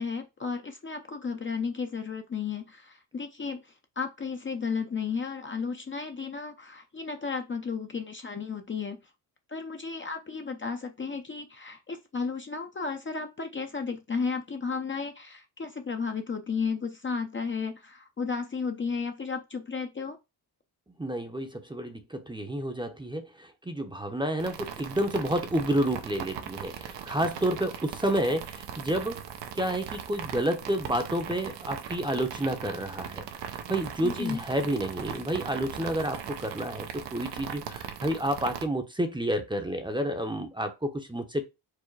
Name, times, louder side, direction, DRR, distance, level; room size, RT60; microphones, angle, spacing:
voice 1, 0.0-9.0 9.5-20.2 34.0-34.4, left 5 dB, 30° left, 0.6 m, -33 dB
voice 2, 21.0-29.2 29.5-41.4, right 1 dB, 10° right, 0.7 m, -30 dB
sound 1, 24.4-38.6, right 8 dB, 75° right, 0.8 m, -39 dB
4.8 x 2.1 x 4.5 m
cardioid pair, 80°, 43 cm